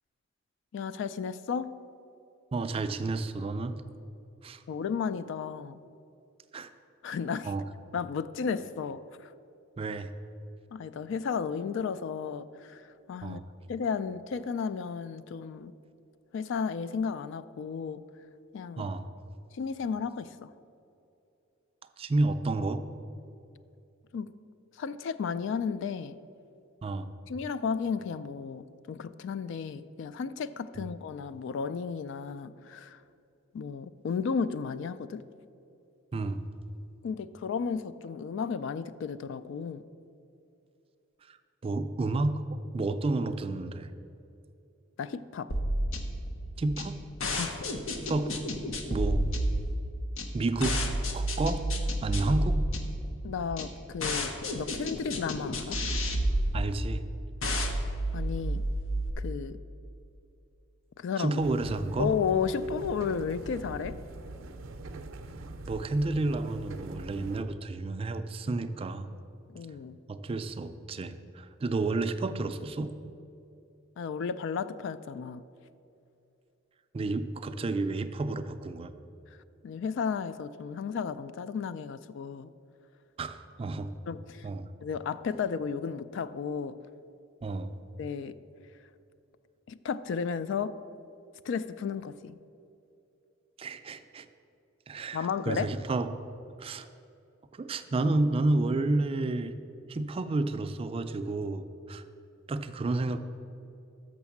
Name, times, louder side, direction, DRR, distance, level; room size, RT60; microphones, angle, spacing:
voice 1, 0.7-1.7 4.7-5.8 7.0-7.5 7.9-9.3 10.7-13.4 13.7-15.7 16.3-18.0 18.5-18.9 19.5-20.5 24.1-24.3 24.8-26.2 27.3-33.0 33.5-35.2 37.0-39.8 45.0-45.5 47.4-47.6 53.2-55.8 58.1-58.6 59.2-59.6 61.0-61.4 62.0-63.9 69.5-70.0 74.0-75.4 79.6-82.5 84.1-84.4 84.8-86.7 88.0-88.4 89.7-90.7 91.4-92.4 95.1-95.7, left 6 dB, 65° left, 15 dB, 0.3 m, -33 dB
voice 2, 2.5-3.8 4.4-4.6 6.5-6.7 7.5-7.6 9.8-10.1 13.2-13.4 18.8-19.0 22.0-22.8 26.8-27.1 30.8-30.9 36.1-36.4 41.3-41.4 41.6-42.4 42.7-43.9 46.6-47.0 48.1-48.3 48.9-49.3 50.3-50.8 51.1-51.6 52.0-52.6 56.5-57.0 61.2-62.1 65.7-69.1 70.1-72.9 76.9-78.9 83.2-83.9 84.4-84.7 87.4-87.8 93.6-94.3 94.9-96.1 96.6-96.9 97.5-99.5 99.9-102.0 102.5-103.2, right 2 dB, 30° right, 10 dB, 0.3 m, -30 dB
sound 1, 45.5-59.1, equal, 85° left, 0.9 m, -31 dB
sound 2, 61.4-67.4, right 2 dB, 80° right, 0.5 m, -43 dB
6.4 x 6.0 x 7.1 m, 2.7 s
head